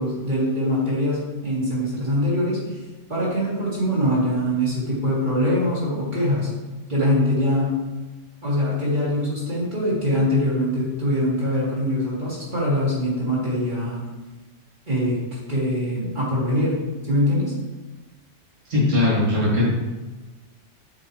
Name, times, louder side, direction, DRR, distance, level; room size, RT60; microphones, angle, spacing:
voice 1, 0.0-2.8 3.1-6.5 6.9-7.7 8.4-14.0 14.9-15.2 15.5-16.8 17.1-17.5, equal, 40° right, -8 dB, 2.0 m, -23 dB
voice 2, 18.7-19.7, left 2 dB, 75° right, -7 dB, 2.8 m, -19 dB
8.3 x 4.5 x 3.1 m, 1.2 s
omnidirectional pair, 1.3 m